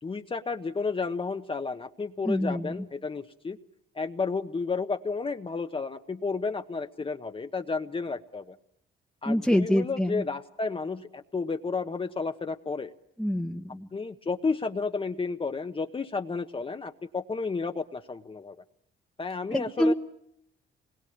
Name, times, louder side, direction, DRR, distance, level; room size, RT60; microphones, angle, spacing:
voice 1, 0.0-3.6 3.9-8.5 9.2-12.9 13.9-18.6 19.2-19.9, left 4 dB, 25° left, 6 dB, 1.1 m, -32 dB
voice 2, 2.2-2.7 9.2-10.2 13.2-13.9 19.5-19.9, equal, ahead, 1 dB, 1.2 m, -26 dB
26.5 x 21.0 x 8.7 m, 0.74 s
cardioid pair, 90°, 20 cm